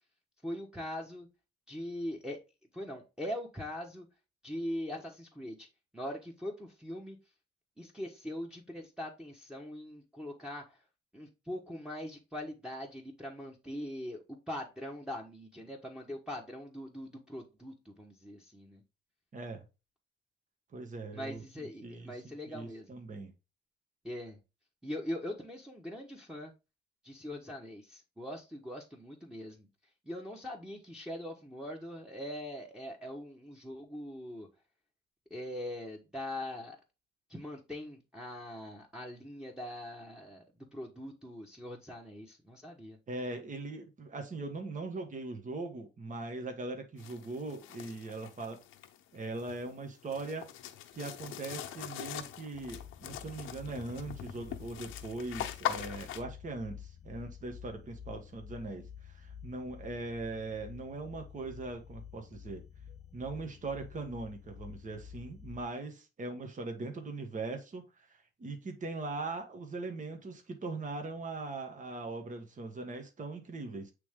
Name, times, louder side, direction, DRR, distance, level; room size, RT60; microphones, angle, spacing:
voice 1, 0.4-1.3 1.7-2.4 2.7-4.1 4.4-5.7 5.9-7.2 7.8-10.8 11.1-18.8 21.1-22.9 24.0-24.4 24.8-26.5 27.0-29.7 30.1-34.5 35.3-36.8 37.3-40.4 40.7-43.0, left 1 dB, 5° right, 1.3 m, -42 dB
voice 2, 19.3-19.6 20.7-23.3 43.1-48.6 49.1-50.5 50.9-62.6 63.1-73.9, right 3 dB, 40° right, 1.5 m, -40 dB
sound 1, 47.0-56.2, left 11 dB, 90° left, 0.8 m, -42 dB
sound 2, 52.5-65.6, left 8 dB, 35° left, 0.6 m, -50 dB
8.3 x 3.3 x 3.7 m
cardioid pair, 90°, 20 cm